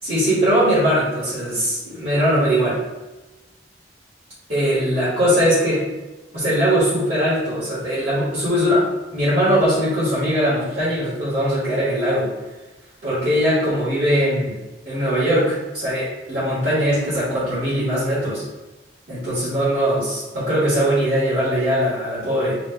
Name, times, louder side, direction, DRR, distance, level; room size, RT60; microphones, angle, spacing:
voice 1, 0.0-2.8 4.5-5.8 6.3-12.3 13.0-14.5 14.8-18.4 19.1-22.6, equal, 50° right, -11 dB, 1.2 m, -20 dB
2.9 x 2.3 x 3.7 m, 1.1 s
head